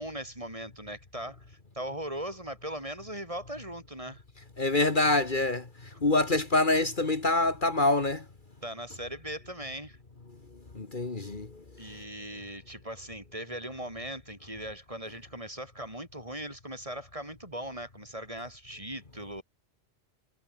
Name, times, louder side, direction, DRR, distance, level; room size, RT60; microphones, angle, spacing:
voice 1, 0.0-4.2 8.6-10.0 11.8-19.4, right 1 dB, 30° right, 6.4 m, -39 dB
voice 2, 4.4-8.3 10.3-12.0, left 2 dB, 50° left, 2.2 m, -27 dB
omnidirectional pair, 1.1 m